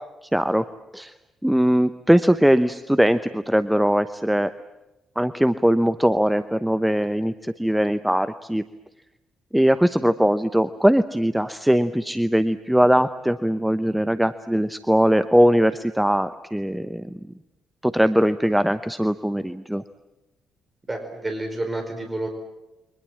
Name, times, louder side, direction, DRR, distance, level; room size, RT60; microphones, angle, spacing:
voice 1, 0.3-0.6 0.9-1.1 1.4-4.5 5.2-8.6 9.5-17.1 17.8-19.8, equal, 5° right, 12 dB, 1.0 m, -20 dB
voice 2, 20.9-22.3, right 2 dB, 20° right, 4 dB, 5.0 m, -29 dB
29.0 x 24.0 x 7.5 m, 1.0 s
figure-of-eight pair, 40°, 0 cm